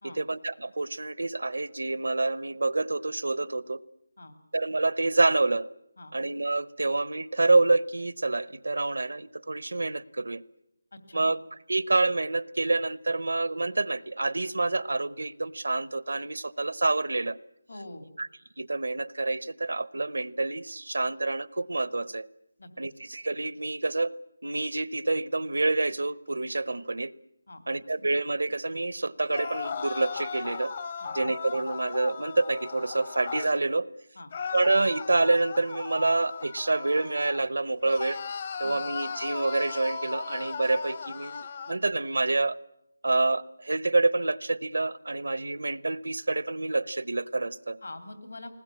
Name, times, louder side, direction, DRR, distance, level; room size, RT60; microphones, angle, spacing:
voice 1, 0.0-3.8 4.5-5.7 6.1-10.4 11.1-11.4 11.7-17.4 18.2-18.3 18.6-22.3 22.8-27.1 27.7-30.7 31.1-33.9 34.5-38.2 38.6-42.6 43.0-47.8, right 2 dB, 80° right, 19 dB, 0.9 m, -27 dB
voice 2, 10.9-11.3 17.7-18.1 22.6-22.7 27.5-27.6 31.0-31.1 34.2-34.3 38.6-38.8 47.8-48.5, left 2 dB, 70° left, 8 dB, 2.9 m, -43 dB
sound 1, 29.2-33.6 34.3-37.5 37.8-41.8, left 5 dB, 35° left, 0.9 m, -37 dB
21.0 x 20.0 x 8.6 m, 0.83 s
figure-of-eight pair, 170°, 0 cm